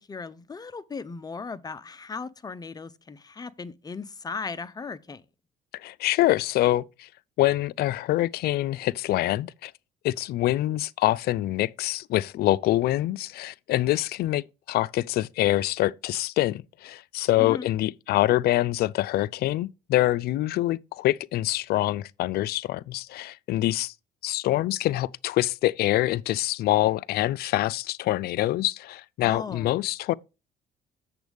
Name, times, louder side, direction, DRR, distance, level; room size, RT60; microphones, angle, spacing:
voice 1, 0.0-5.2 17.4-17.7 29.2-29.7, left 4 dB, 25° left, 0.6 m, -37 dB
voice 2, 5.7-7.1 7.4-9.7 10.0-23.9 24.2-30.1, left 15 dB, 65° left, 0.4 m, -25 dB
7.9 x 7.1 x 3.4 m
supercardioid pair, 85°, 17 cm